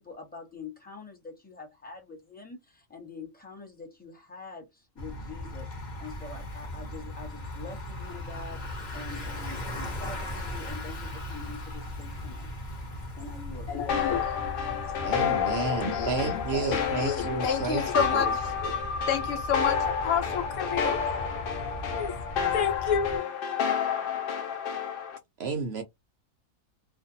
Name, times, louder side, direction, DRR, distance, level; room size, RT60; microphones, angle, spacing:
voice 1, 0.0-12.5 13.2-13.7, left 4 dB, 10° left, 0.7 m, -45 dB
Bicycle, 5.0-23.2, left 1 dB, 40° left, 1.0 m, -38 dB
voice 2, 13.7-14.3 15.5-21.0 21.9-22.1 22.5-23.2, left 8 dB, 85° left, 1.2 m, -30 dB
sound 1, 13.9-25.2, left 7 dB, 60° left, 0.6 m, -30 dB
voice 3, 15.0-18.3 25.4-25.8, right 4 dB, 65° right, 0.7 m, -31 dB
2.5 x 2.2 x 2.6 m
omnidirectional pair, 1.4 m